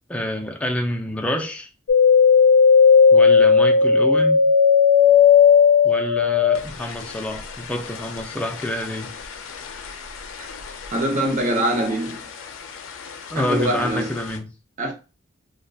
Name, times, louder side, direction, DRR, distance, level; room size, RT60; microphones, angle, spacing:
voice 1, 0.1-1.7 3.1-4.5 5.8-9.1 13.3-14.5, left 1 dB, 5° left, 0.3 m, -27 dB
sound 1, 1.9-11.3 11.5-12.4 12.8-13.7 14.1-14.2, left 6 dB, 85° left, 0.4 m, -16 dB
voice 2, 10.9-12.2 13.3-14.1 14.8-14.9, right 1 dB, 40° right, 0.6 m, -23 dB
2.6 x 2.1 x 2.3 m
head